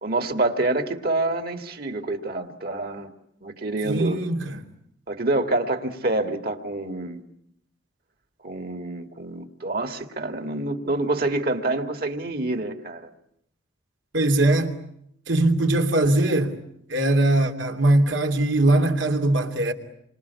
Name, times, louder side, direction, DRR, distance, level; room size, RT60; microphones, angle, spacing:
voice 1, 0.0-3.1 3.4-4.2 5.1-7.2 8.4-13.1, right 2 dB, 50° right, 2.3 m, -27 dB
voice 2, 3.8-4.6 14.1-14.7 15.3-16.6 16.9-19.7, right 2 dB, 85° right, 2.9 m, -21 dB
28.0 x 25.5 x 8.4 m
head